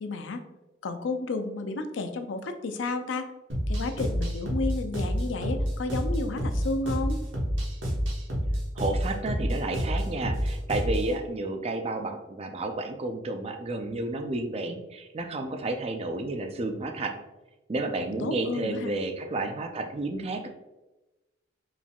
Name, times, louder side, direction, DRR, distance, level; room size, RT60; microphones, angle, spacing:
voice 1, 0.0-0.4 0.8-3.3 3.7-7.2 18.0-18.9, left 3 dB, 85° left, 8 dB, 0.5 m, -32 dB
sound 1, 3.5-11.1, equal, 90° right, 1.1 m, -28 dB
voice 2, 8.8-17.1 17.7-20.5, right 2 dB, 35° right, 5 dB, 0.4 m, -31 dB
5.0 x 3.5 x 2.3 m, 1.0 s
head